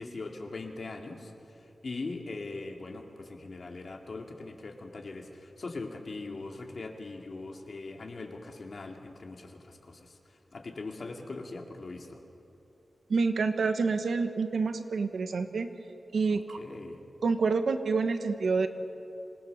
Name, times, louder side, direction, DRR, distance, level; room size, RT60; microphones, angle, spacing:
voice 1, 0.0-12.2 16.3-17.0, left 3 dB, 55° left, 2 dB, 2.3 m, -41 dB
voice 2, 13.1-15.7 16.1-16.6 17.2-18.7, right 4 dB, 80° right, 8 dB, 1.3 m, -27 dB
27.0 x 19.5 x 6.6 m, 2.9 s
wide cardioid pair, 135°, 0 cm